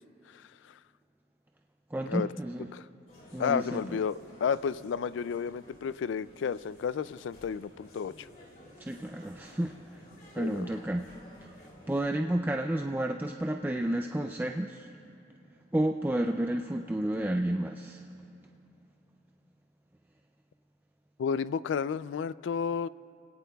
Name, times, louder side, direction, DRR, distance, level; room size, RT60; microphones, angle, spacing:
voice 1, 1.9-2.7 3.3-4.0 8.8-10.0 10.3-11.1 11.4-14.9 15.7-18.1, right 1 dB, 10° right, 3 dB, 0.3 m, -31 dB
sound 1, 3.1-12.1, left 1 dB, 50° left, 3.0 m, -54 dB
voice 2, 3.4-8.3 10.4-10.7 21.2-22.9, left 6 dB, 75° left, 17 dB, 0.3 m, -32 dB
29.5 x 17.5 x 2.3 m, 2.6 s
head